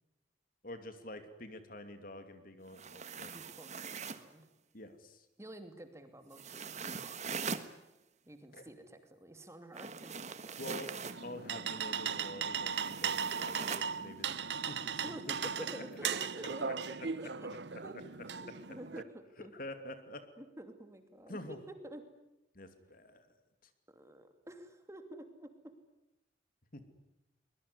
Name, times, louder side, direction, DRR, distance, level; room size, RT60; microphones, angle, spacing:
voice 1, 0.6-3.3 4.7-5.3 8.5-8.6 10.6-10.9 11.2-14.4 14.7-15.0 15.7-16.3 16.6-17.1 19.5-20.2 21.3-21.6 22.5-23.3 23.6-23.7 26.7-26.8, left 1 dB, 50° left, 9 dB, 2.7 m, -47 dB
sound 1, 2.7-4.3 6.3-7.7 9.7-11.2 12.7-13.9, right 5 dB, 40° right, 1.4 m, -42 dB
voice 2, 3.3-4.5 5.4-7.7 8.3-10.8 15.0-17.0 17.2-17.5 17.8-17.9 18.3-19.1 19.4-19.5 20.4-22.0 23.9-25.5, right 1 dB, 15° right, 7 dB, 2.7 m, -50 dB
sound 2, 11.0-19.0, right 6 dB, 75° right, 1.0 m, -37 dB
23.5 x 21.5 x 9.8 m, 0.92 s
head